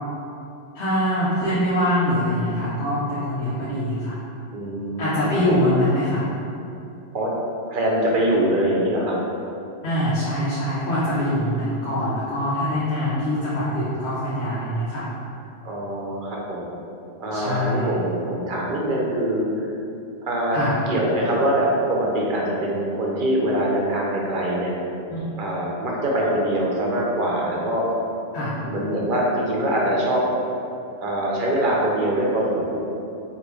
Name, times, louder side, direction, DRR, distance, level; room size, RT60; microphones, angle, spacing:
voice 1, 0.7-4.2 5.0-6.3 9.8-15.0 17.3-17.9 20.5-20.8 25.1-25.2 28.3-28.6, left 1 dB, 75° left, -10 dB, 1.1 m, -23 dB
voice 2, 4.5-5.7 7.1-7.3 7.7-9.2 15.6-16.7 17.2-19.7 20.2-20.6 20.9-24.7 25.4-27.8 28.6-30.2 31.0-32.8, right 1 dB, 50° right, -3 dB, 0.8 m, -23 dB
5.1 x 2.7 x 3.1 m, 2.7 s
omnidirectional pair, 1.2 m